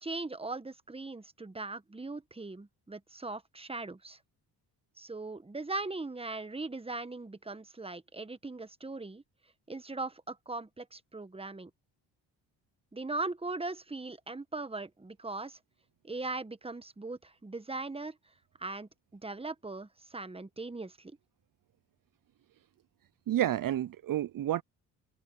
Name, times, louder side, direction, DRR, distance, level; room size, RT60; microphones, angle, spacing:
voice 1, 0.0-4.2 5.0-9.2 9.7-11.7 12.9-15.6 16.0-18.2 18.6-21.2, right 3 dB, 15° right, 1.4 m, -39 dB
voice 2, 23.3-24.6, right 12 dB, 50° right, 0.7 m, -30 dB
supercardioid pair, 60°, 43 cm